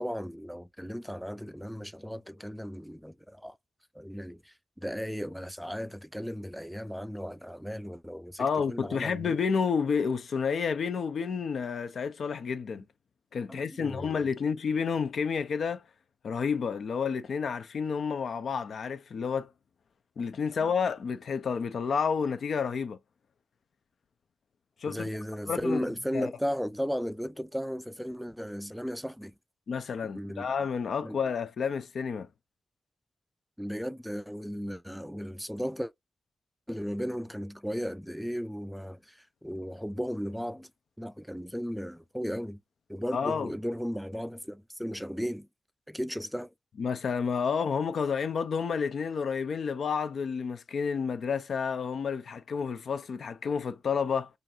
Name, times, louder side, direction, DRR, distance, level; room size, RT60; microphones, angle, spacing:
voice 1, 0.0-3.6 3.9-9.4 13.5-14.2 20.6-20.7 24.9-29.3 30.0-30.5 31.0-31.2 33.6-35.9 36.7-40.7 41.0-42.6 42.9-45.5 45.9-46.5, equal, ahead, 0.3 m, -35 dB
voice 2, 8.4-12.9 13.3-15.8 16.2-19.5 20.2-23.0 24.8-25.1 25.5-25.8 26.1-26.3 29.7-32.3 43.1-43.5 46.8-54.3, left 6 dB, 75° left, 0.4 m, -30 dB
3.9 x 2.5 x 2.7 m
cardioid pair, 60°, 0 cm